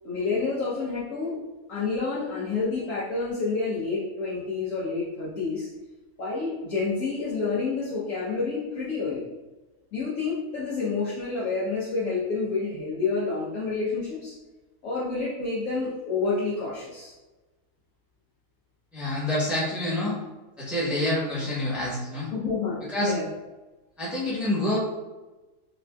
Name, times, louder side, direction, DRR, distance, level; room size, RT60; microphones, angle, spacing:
voice 1, 0.0-1.4 1.7-5.7 6.2-9.2 9.9-14.3 14.8-17.1 22.3-23.3, left 4 dB, 70° left, -9 dB, 1.1 m, -29 dB
voice 2, 18.9-20.1 20.6-22.3 22.9-23.1 24.0-24.8, left 1 dB, ahead, -8 dB, 0.8 m, -27 dB
4.1 x 2.5 x 2.2 m, 1.1 s
omnidirectional pair, 1.4 m